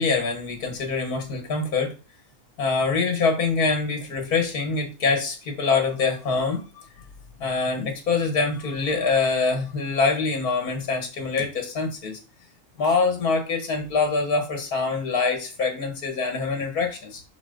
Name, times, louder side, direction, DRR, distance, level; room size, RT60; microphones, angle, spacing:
voice 1, 0.0-1.9 2.6-6.6 7.4-12.2 12.8-17.2, left 4 dB, 75° left, 4 dB, 2.1 m, -24 dB
6.2 x 6.0 x 3.8 m, 0.31 s
omnidirectional pair, 1.6 m